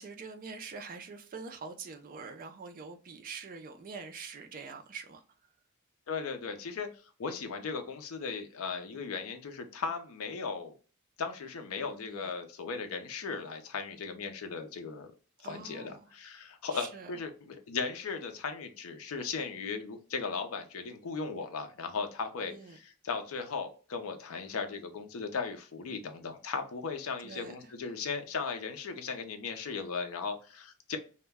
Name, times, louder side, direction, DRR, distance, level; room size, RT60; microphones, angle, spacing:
voice 1, 0.0-5.2 11.9-12.3 15.4-16.1 16.7-17.1 22.4-22.8 27.2-27.5, right 5 dB, 40° right, 0.4 m, -45 dB
voice 2, 6.1-6.9 7.2-10.7 11.2-15.1 15.4-31.0, left 5 dB, 65° left, 0.5 m, -37 dB
2.1 x 2.1 x 3.3 m
head